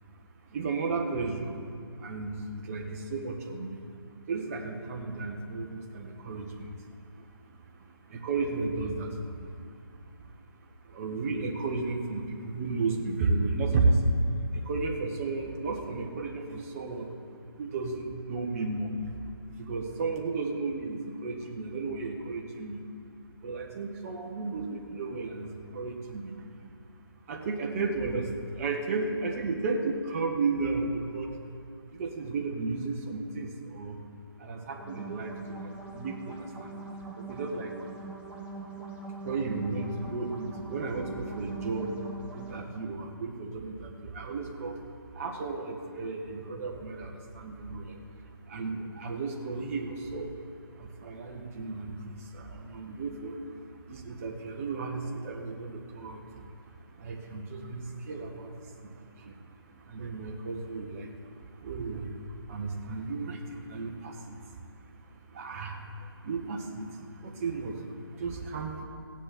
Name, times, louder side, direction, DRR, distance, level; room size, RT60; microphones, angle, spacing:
voice 1, 0.5-1.6 2.0-3.8 4.3-6.5 8.1-9.1 10.9-14.0 14.7-17.1 17.6-18.9 19.6-22.8 23.4-26.3 27.3-31.4 32.0-34.0 34.4-36.7 37.3-37.7 39.2-42.0 42.3-44.8 45.1-48.0 48.5-50.3 50.8-53.3 53.9-56.2 57.0-58.5 59.2-59.3 59.9-61.1 61.6-62.1 62.5-64.3 65.3-65.8 66.2-66.9 67.2-67.8 68.2-68.8, right 3 dB, 35° right, 2 dB, 1.4 m, -33 dB
sound 1, 34.7-42.6, right 3 dB, 10° right, 1.5 m, -42 dB
16.5 x 10.0 x 4.4 m, 2.4 s
figure-of-eight pair, 150°, 13 cm